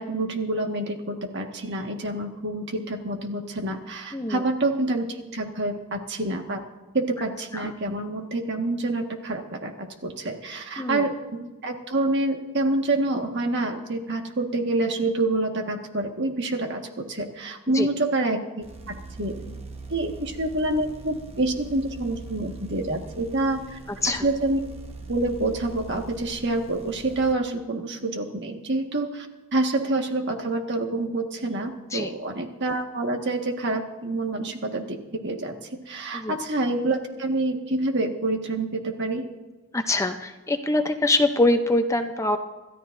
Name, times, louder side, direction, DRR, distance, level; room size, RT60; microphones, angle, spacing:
voice 1, 0.0-5.1 5.3-6.6 6.9-19.5 19.9-23.8 24.1-24.6 25.1-29.3 29.5-35.5 35.9-39.3, right 2 dB, 55° right, 3 dB, 1.7 m, -27 dB
voice 2, 4.1-4.4 7.5-7.7 10.8-11.0 17.7-17.9 23.9-24.3 31.9-32.1 36.1-36.4 39.7-42.4, left 2 dB, 15° left, 7 dB, 0.6 m, -24 dB
sound 1, 18.6-27.3, right 3 dB, 30° right, 1.2 m, -41 dB
27.0 x 13.5 x 2.6 m, 1.2 s
head